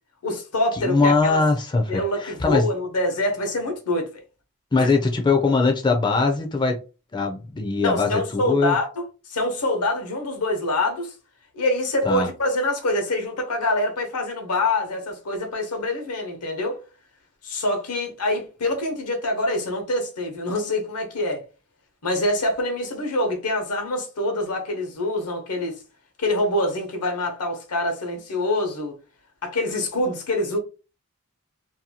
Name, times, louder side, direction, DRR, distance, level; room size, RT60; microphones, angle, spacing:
voice 1, 0.2-1.4 1.9-4.1 4.8-4.9 7.8-9.0 9.3-11.1 11.5-16.8 17.4-21.4 22.0-25.8 26.2-29.0 29.4-30.6, left 1 dB, 85° left, 0.9 m, -25 dB
voice 2, 0.7-2.7 4.7-6.8 7.1-8.8 12.0-12.3, left 3 dB, 20° left, 0.4 m, -21 dB
2.7 x 2.2 x 2.8 m
head